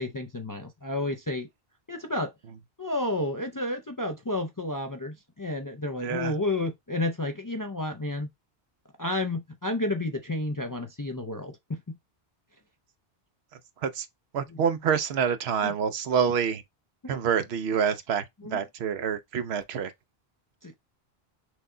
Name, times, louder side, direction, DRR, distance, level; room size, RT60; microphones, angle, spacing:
voice 1, 0.0-1.5 1.9-2.3 2.8-8.3 9.0-11.8 15.6-15.7 18.5-18.6 20.6-20.7, left 2 dB, 30° left, 0.3 m, -31 dB
voice 2, 6.0-6.4 13.8-14.1 14.3-16.6 17.1-19.9, right 7 dB, 80° right, 0.9 m, -27 dB
6.1 x 2.2 x 3.7 m
omnidirectional pair, 1.1 m